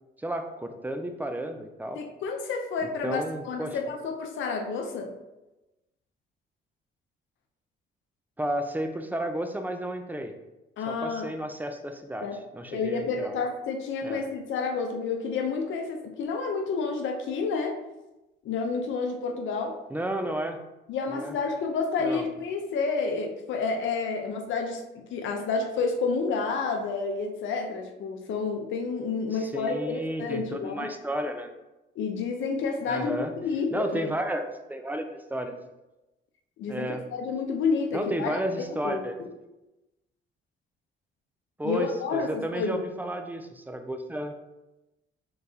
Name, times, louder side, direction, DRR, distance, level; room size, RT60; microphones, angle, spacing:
voice 1, 0.2-2.0 3.0-3.8 8.4-10.3 10.9-13.4 14.0-14.2 19.9-20.6 21.1-21.3 22.0-22.2 29.3-31.5 32.9-33.3 33.7-35.5 36.7-37.1 37.9-39.2 41.6-44.3, right 1 dB, 10° right, 6 dB, 0.5 m, -32 dB
voice 2, 2.0-5.1 10.8-11.3 12.2-12.4 12.7-17.8 18.4-19.8 20.9-24.8 25.1-30.9 32.0-34.1 36.6-39.0 41.6-42.8, left 4 dB, 75° left, 3 dB, 0.7 m, -30 dB
4.6 x 3.9 x 2.7 m, 1.0 s
cardioid pair, 90°, 20 cm